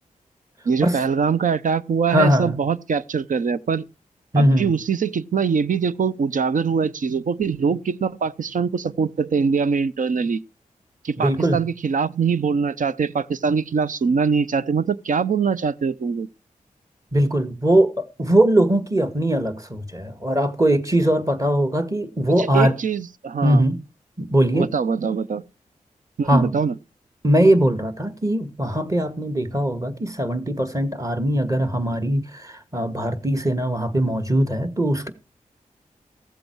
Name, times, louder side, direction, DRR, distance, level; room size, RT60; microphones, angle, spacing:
voice 1, 0.7-3.8 4.4-10.4 11.0-16.3 22.3-23.6 24.5-25.4 26.2-26.7, right 5 dB, 70° right, 0.7 m, -23 dB
voice 2, 2.1-2.6 4.3-4.7 11.2-11.6 17.1-22.7 23.4-23.8 24.2-24.7 26.3-26.5 27.2-35.1, right 1 dB, 25° right, 1.8 m, -20 dB
15.0 x 7.8 x 4.6 m
cardioid pair, 50°, 14 cm